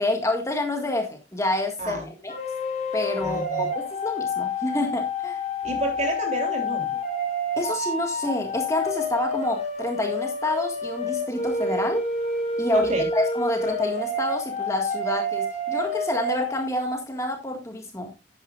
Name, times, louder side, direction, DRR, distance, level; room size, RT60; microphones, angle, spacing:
voice 1, 0.0-2.3 2.9-5.4 7.6-12.1 12.6-18.1, left 1 dB, 20° left, 3 dB, 1.7 m, -28 dB
sound 1, 2.3-16.7, left 1 dB, 40° left, 3.3 m, -28 dB
voice 2, 3.2-3.7 5.6-6.9 12.7-13.1, right 1 dB, 40° right, 2 dB, 3.5 m, -29 dB
11.5 x 10.0 x 2.4 m, 0.26 s
head